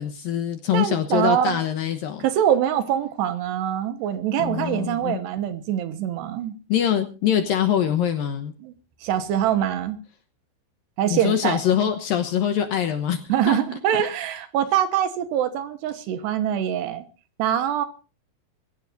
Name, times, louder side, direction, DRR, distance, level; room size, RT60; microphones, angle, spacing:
voice 1, 0.0-2.2 4.4-5.2 6.7-8.5 11.1-13.6, left 9 dB, 70° left, 8 dB, 2.3 m, -24 dB
voice 2, 0.7-1.6 2.2-6.5 8.6-8.7 9.0-10.0 11.0-11.6 13.3-17.1 17.4-17.9, right 10 dB, 75° right, 10 dB, 3.2 m, -24 dB
24.0 x 15.5 x 2.7 m, 0.33 s
omnidirectional pair, 5.2 m